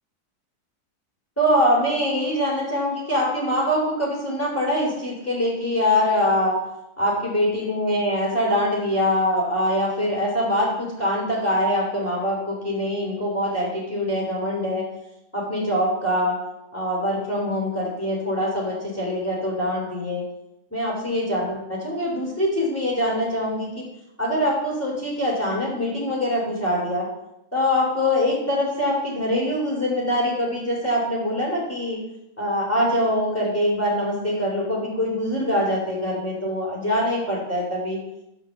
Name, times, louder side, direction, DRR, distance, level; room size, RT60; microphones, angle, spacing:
voice 1, 1.4-6.5 7.0-14.9 15.3-16.4 16.7-20.2 20.7-23.8 24.2-27.1 27.5-32.0 32.4-38.0, equal, 10° left, -4 dB, 3.3 m, -23 dB
8.5 x 5.2 x 6.6 m, 0.86 s
omnidirectional pair, 1.8 m